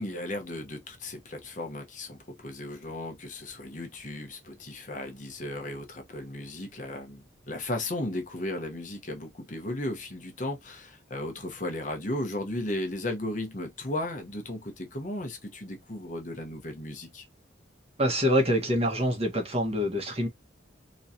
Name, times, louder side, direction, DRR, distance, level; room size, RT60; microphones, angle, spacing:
voice 1, 0.0-17.3, left 1 dB, 45° left, 1.1 m, -35 dB
voice 2, 18.0-20.3, equal, 35° right, 1.4 m, -25 dB
3.7 x 3.1 x 2.8 m
head